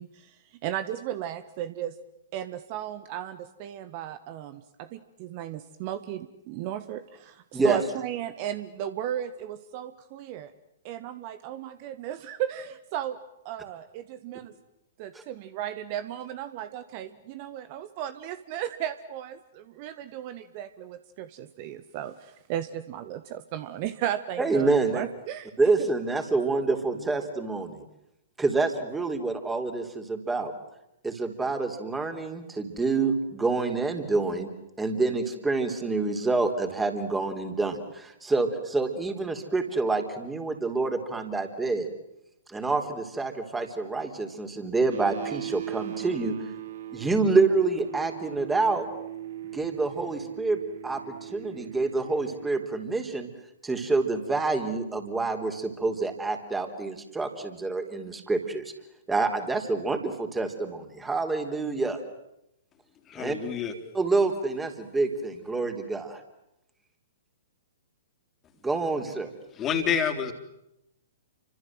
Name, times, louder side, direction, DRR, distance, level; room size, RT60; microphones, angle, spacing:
voice 1, 0.0-2.0 2.3-10.5 10.8-13.2 13.4-14.5 15.0-25.5, right 11 dB, 40° right, 13 dB, 1.4 m, -35 dB
voice 2, 24.4-25.0 25.6-27.8 28.4-30.5 31.0-34.5 34.8-41.9 42.5-46.4 46.9-48.9 49.5-53.3 53.6-58.6 59.1-62.0 63.2-63.4 63.9-66.2 68.6-69.3, right 3 dB, 10° right, 6 dB, 4.0 m, -27 dB
sound 1, 44.9-52.5, right 11 dB, 55° right, 1.9 m, -39 dB
voice 3, 63.1-63.7 69.5-70.3, left 7 dB, 25° left, 6 dB, 3.7 m, -28 dB
30.0 x 25.5 x 7.8 m, 0.84 s
figure-of-eight pair, 115°, 0 cm